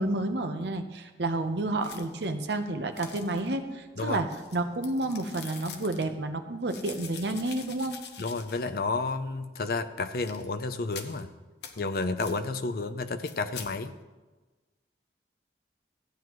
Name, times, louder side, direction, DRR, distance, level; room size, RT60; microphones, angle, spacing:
voice 1, 0.0-8.0, right 2 dB, 75° right, 7 dB, 0.8 m, -30 dB
sound 1, 1.8-2.3 2.9-3.6 4.1-6.1 6.7-8.8 9.1-9.2 10.1-10.5 10.9-11.2 11.6-11.7 12.2-12.4 13.0-13.7, left 7 dB, 75° left, 0.9 m, -45 dB
voice 2, 8.2-11.3 11.8-13.9, left 3 dB, 55° left, 11 dB, 0.5 m, -31 dB
14.5 x 9.3 x 3.1 m, 1.2 s
head